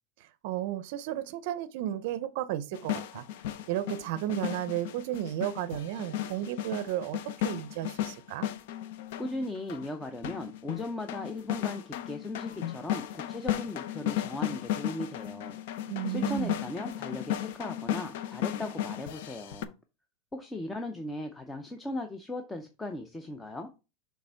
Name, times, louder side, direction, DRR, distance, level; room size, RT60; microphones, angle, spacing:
voice 1, 0.4-3.2 3.7-7.2 7.4-8.5 15.9-16.6, right 12 dB, 50° right, 0.5 m, -33 dB
sound 1, 2.7-19.6, left 12 dB, 60° left, 0.6 m, -35 dB
voice 2, 9.2-15.6 16.1-19.7 20.3-23.7, left 1 dB, 10° left, 0.5 m, -38 dB
6.5 x 3.4 x 4.4 m
supercardioid pair, 165°, 0 cm